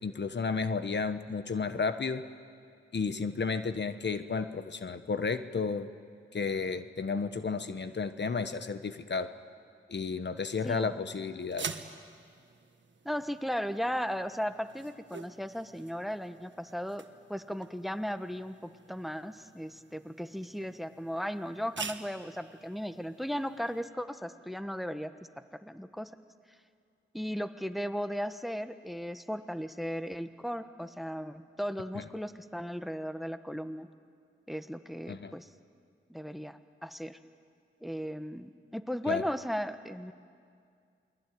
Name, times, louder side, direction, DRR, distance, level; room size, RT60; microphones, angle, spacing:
voice 1, 0.0-2.2 2.9-5.9 6.3-9.3 9.9-11.7 35.1-35.3 39.1-39.2, left 4 dB, 55° left, 10 dB, 1.2 m, -32 dB
sound 1, 11.4-23.9, right 5 dB, 60° right, 1.6 m, -47 dB
voice 2, 13.0-17.0 17.3-25.1 25.5-26.1 27.1-33.9 34.5-35.5 36.1-37.2 37.8-40.1, equal, ahead, 10 dB, 1.3 m, -36 dB
28.5 x 21.5 x 9.4 m, 2.3 s
cardioid pair, 55°, 21 cm